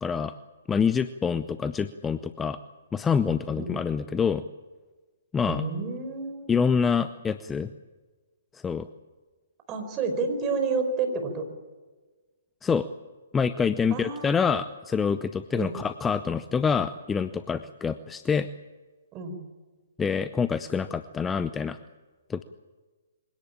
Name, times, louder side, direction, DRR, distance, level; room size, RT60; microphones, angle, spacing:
voice 1, 0.0-0.3 0.7-2.6 2.9-4.4 5.3-5.6 6.5-7.7 8.5-8.9 12.6-12.9 13.3-18.5 20.0-21.8 22.3-22.4, left 6 dB, 10° left, 13 dB, 0.6 m, -26 dB
voice 2, 5.5-6.5 9.7-11.4 13.9-14.5 15.5-15.8 19.1-19.4, right 4 dB, 25° right, 5 dB, 5.1 m, -30 dB
24.0 x 17.5 x 8.8 m, 1.3 s
figure-of-eight pair, 130°, 0 cm